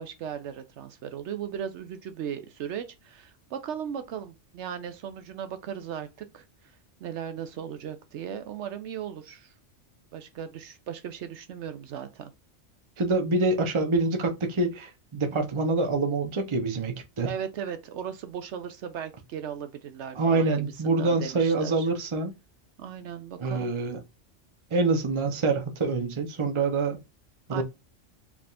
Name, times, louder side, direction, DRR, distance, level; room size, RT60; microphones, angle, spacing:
voice 1, 0.0-9.5 10.1-12.3 17.2-21.9 22.8-23.7 27.5-27.6, right 8 dB, 75° right, 0.9 m, -37 dB
voice 2, 13.0-17.3 20.1-22.3 23.4-24.0 24.7-27.0 27.5-27.6, right 3 dB, 30° right, 0.7 m, -26 dB
4.8 x 3.5 x 2.4 m
omnidirectional pair, 1.3 m